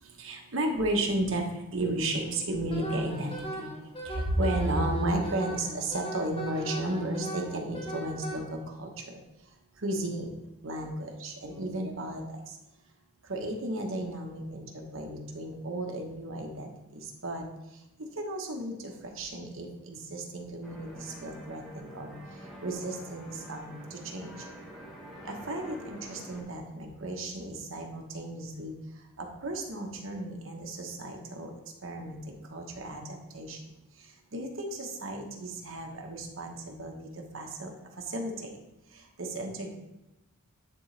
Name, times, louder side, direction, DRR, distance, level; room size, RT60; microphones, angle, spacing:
voice 1, 0.2-1.4 1.7-3.6 4.0-8.9 9.8-10.3 10.6-12.2 13.3-14.7 14.9-16.7 16.9-17.4 18.2-18.7 19.2-20.9 21.2-22.1 22.6-24.3 25.3-28.7 29.2-31.5 31.8-32.2 32.5-33.0 33.3-33.6 34.3-36.9 37.3-37.7 38.1-38.3 39.2-39.8, right 1 dB, 65° right, 2 dB, 1.1 m, -33 dB
Wind instrument woodwind instrument, 2.7-8.4, right 1 dB, 25° left, 1.2 m, -38 dB
sound 1, 20.6-26.4, equal, ahead, 1.1 m, -46 dB
9.8 x 3.8 x 3.3 m, 0.97 s
head